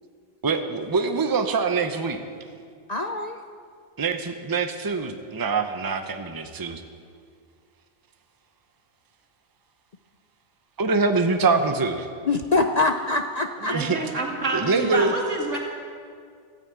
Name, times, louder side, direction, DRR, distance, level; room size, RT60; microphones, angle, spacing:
voice 1, 0.4-2.2 4.0-6.8 10.8-12.1 13.7-14.0 14.5-15.1, right 4 dB, 20° right, 7 dB, 0.7 m, -24 dB
voice 2, 2.9-3.4 12.3-13.8, left 3 dB, 45° left, 6 dB, 0.5 m, -24 dB
voice 3, 13.6-15.6, right 3 dB, 80° right, 0 dB, 2.5 m, -28 dB
14.0 x 9.3 x 8.4 m, 2.2 s
omnidirectional pair, 1.2 m